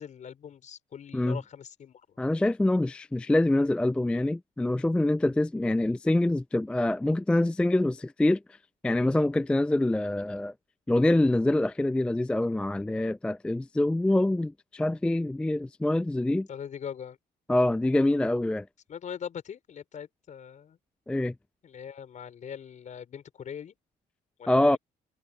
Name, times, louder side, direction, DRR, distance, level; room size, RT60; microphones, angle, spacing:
voice 1, 0.0-2.2 16.5-17.2 18.9-20.8 21.6-23.7 24.4-24.8, left 8 dB, 45° left, 5.5 m, -41 dB
voice 2, 2.2-8.4 8.8-10.5 10.9-16.5 17.5-18.7 21.1-21.3 24.5-24.8, left 1 dB, 5° left, 0.3 m, -25 dB
cardioid pair, 110°, 17 cm